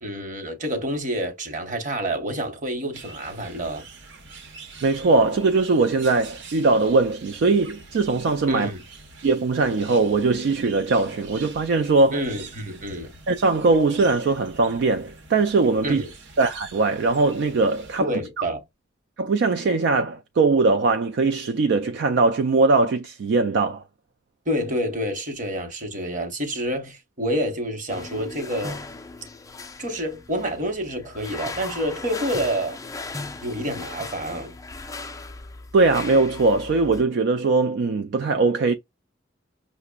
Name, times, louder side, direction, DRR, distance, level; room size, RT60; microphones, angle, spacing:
voice 1, 0.0-3.8 8.5-8.8 12.1-13.1 15.8-16.1 18.0-18.6 24.5-28.8 29.8-32.8 33.4-34.6, equal, 45° right, 1.0 m, -28 dB
sound 1, 2.9-18.0, right 4 dB, 85° right, 0.9 m, -44 dB
voice 2, 4.8-8.7 9.2-12.2 13.3-16.0 16.4-18.1 19.2-23.8 35.7-38.7, right 3 dB, 65° right, 0.3 m, -20 dB
sound 2, 27.9-37.0, left 3 dB, 20° left, 0.3 m, -37 dB
5.7 x 2.1 x 2.2 m
head